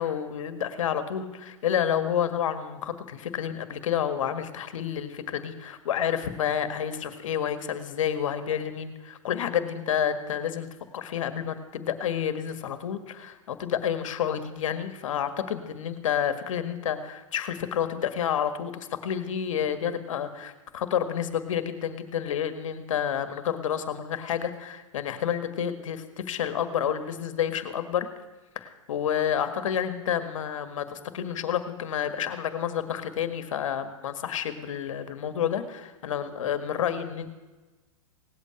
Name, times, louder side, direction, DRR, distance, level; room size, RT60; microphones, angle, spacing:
voice 1, 0.0-10.7 10.9-28.1 28.6-37.3, left 9 dB, 75° left, 10 dB, 1.8 m, -29 dB
18.0 x 8.5 x 8.8 m, 1.2 s
hypercardioid pair, 130°, 17 cm